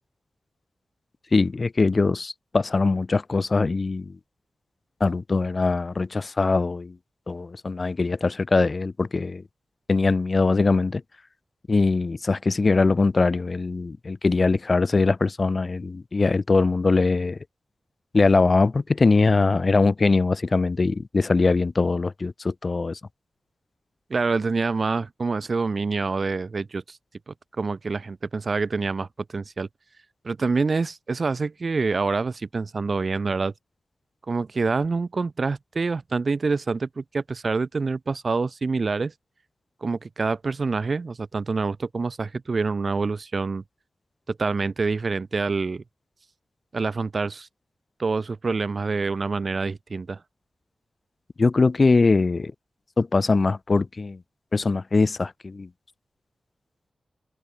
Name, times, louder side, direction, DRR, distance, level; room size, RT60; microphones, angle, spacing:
voice 1, 1.3-4.1 5.0-6.9 7.3-9.4 9.9-11.0 11.7-17.4 18.1-23.0 51.4-52.5 53.0-54.2 54.5-55.7, left 3 dB, 35° left, 1.1 m, -22 dB
voice 2, 24.1-27.0 27.3-29.7 30.2-33.5 34.3-39.1 39.8-43.6 44.3-45.8 46.7-47.5 48.0-50.2, right 4 dB, 40° right, 0.7 m, -26 dB
wide cardioid pair, 160°, 0 cm